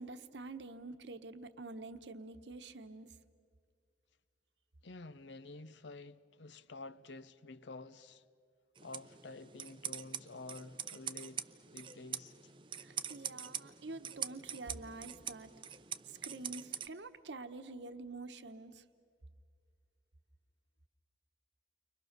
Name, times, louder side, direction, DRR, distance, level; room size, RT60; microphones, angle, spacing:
voice 1, 0.0-3.1 12.8-15.5 16.1-18.8, right 3 dB, 75° right, 1.1 m, -47 dB
voice 2, 4.8-8.2 8.8-11.5 11.7-12.3, left 3 dB, 75° left, 0.7 m, -50 dB
sound 1, 8.8-16.9, right 9 dB, 25° right, 0.5 m, -44 dB
30.0 x 23.5 x 6.7 m
head